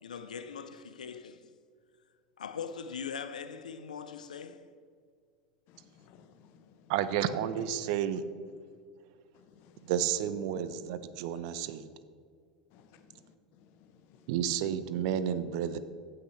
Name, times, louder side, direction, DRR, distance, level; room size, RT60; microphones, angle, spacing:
voice 1, 0.0-1.4 2.4-4.7, left 6 dB, 90° left, 0.5 m, -41 dB
voice 2, 5.7-6.8 9.5-9.9 12.7-13.2 13.6-13.7 13.9-14.2, left 7 dB, 60° left, 0.9 m, -60 dB
voice 3, 6.9-8.2 9.9-11.9 14.3-15.8, right 9 dB, 65° right, 0.6 m, -31 dB
16.0 x 5.8 x 3.2 m
hypercardioid pair, 90°, 4 cm